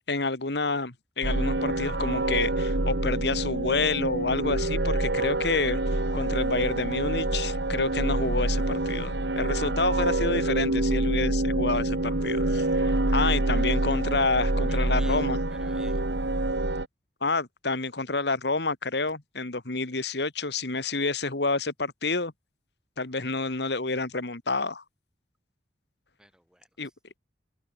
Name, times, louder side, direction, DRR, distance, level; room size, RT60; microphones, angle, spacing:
voice 1, 0.1-5.8 6.1-15.4 17.2-22.3 23.0-24.8 26.8-26.9, left 3 dB, 70° left, 2.0 m, -29 dB
sound 1, 1.2-16.9, right 2 dB, 80° right, 1.8 m, -26 dB
voice 2, 14.7-16.0 26.2-26.9, right 1 dB, 5° right, 6.1 m, -51 dB
head